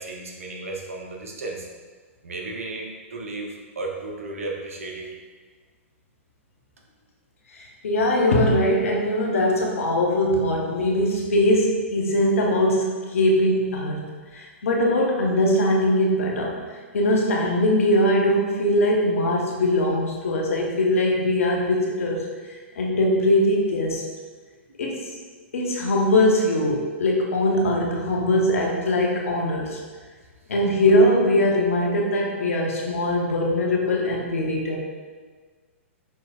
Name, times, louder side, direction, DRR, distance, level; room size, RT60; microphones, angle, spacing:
voice 1, 0.0-1.7 2.2-5.1, right 2 dB, 80° right, 0 dB, 0.8 m, -34 dB
voice 2, 7.5-14.0 14.3-16.6 16.9-24.0 24.8-25.0 25.5-29.8 30.5-34.8, left 1 dB, 75° left, -1 dB, 0.8 m, -21 dB
5.5 x 3.0 x 2.3 m, 1.5 s
hypercardioid pair, 120°, 7 cm